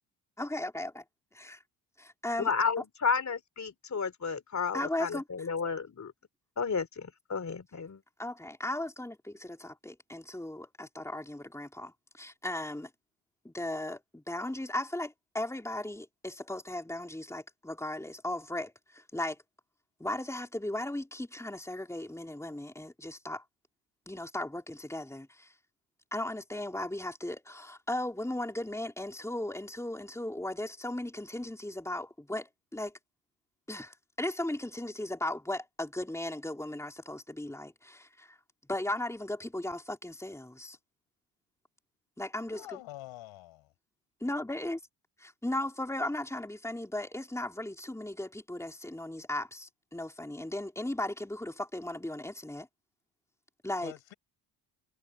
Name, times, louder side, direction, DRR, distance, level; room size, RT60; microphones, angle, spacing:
voice 1, 0.4-1.0 1.3-1.6 2.0-2.5 4.7-5.2 8.2-12.9 13.4-19.4 20.0-23.4 24.1-25.5 26.1-32.9 33.7-38.4 38.7-40.8 42.2-42.8 44.2-44.8 45.2-52.7 53.6-53.9, left 1 dB, 5° left, 3.9 m, -36 dB
voice 2, 2.4-6.1 6.6-8.0, left 5 dB, 35° left, 3.4 m, -32 dB
voice 3, 42.5-43.7 53.8-54.1, left 16 dB, 85° left, 7.8 m, -46 dB
supercardioid pair, 65°, 45 cm